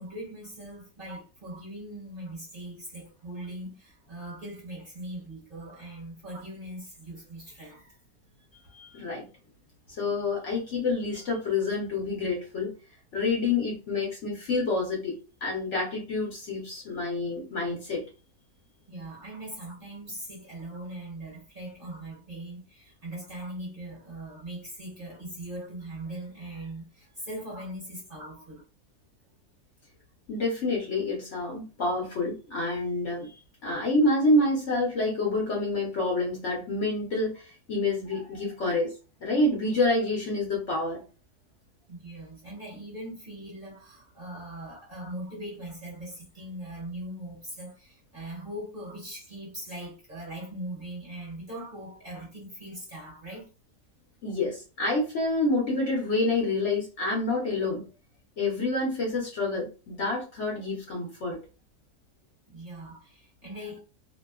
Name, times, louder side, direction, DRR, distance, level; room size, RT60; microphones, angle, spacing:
voice 1, 0.0-7.9 18.9-28.6 41.9-53.5 62.5-63.8, right 1 dB, 40° right, 1.1 m, -40 dB
voice 2, 8.7-9.2 10.0-12.7 13.1-18.0 30.3-33.3 33.6-38.9 39.2-41.0 54.2-57.8 58.4-61.4, left 2 dB, 55° left, 1.0 m, -28 dB
2.8 x 2.2 x 2.3 m
omnidirectional pair, 1.7 m